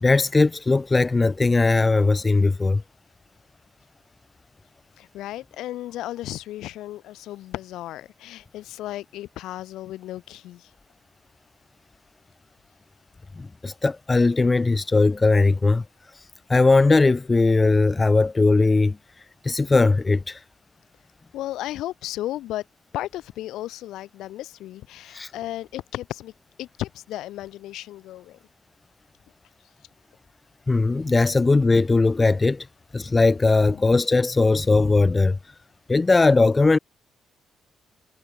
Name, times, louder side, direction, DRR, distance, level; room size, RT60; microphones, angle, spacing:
voice 1, 0.0-2.8 13.4-15.8 16.1-16.2 16.5-19.0 19.4-20.4 25.1-25.3 30.7-32.7 32.9-35.4 35.9-36.8, left 3 dB, 25° left, 0.6 m, -19 dB
voice 2, 5.0-10.7 21.3-22.7 22.9-26.3 26.6-28.4, left 14 dB, 85° left, 3.5 m, -34 dB
cardioid pair, 90°, 0 cm